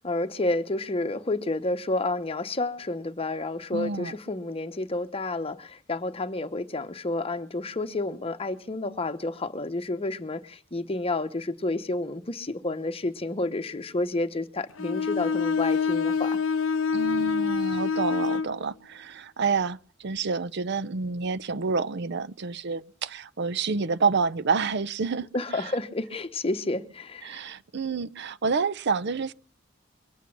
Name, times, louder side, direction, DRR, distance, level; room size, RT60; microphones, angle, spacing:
voice 1, 0.0-16.4 25.3-27.4, left 2 dB, 30° left, 1.0 m, -30 dB
voice 2, 3.7-4.2 16.9-25.3 25.5-25.7 27.2-29.3, right 4 dB, 60° right, 0.6 m, -28 dB
Bowed string instrument, 14.8-18.6, left 5 dB, 85° left, 0.6 m, -26 dB
23.0 x 8.3 x 5.9 m
head